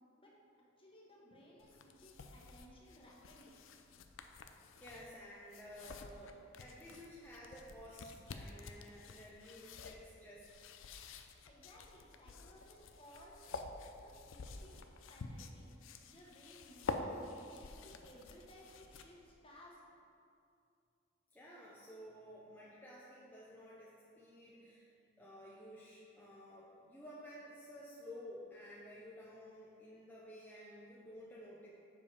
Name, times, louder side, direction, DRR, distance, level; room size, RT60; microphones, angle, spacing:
voice 1, 0.8-3.5 11.4-13.6 13.9-15.7 16.1-19.8, equal, 30° left, -3 dB, 1.3 m, -60 dB
sound 1, 1.6-19.3, left 3 dB, 85° left, 0.5 m, -49 dB
voice 2, 4.8-10.8 21.3-24.9 25.2-31.7, equal, 10° left, -7 dB, 0.8 m, -53 dB
7.1 x 5.4 x 4.9 m, 2.5 s
head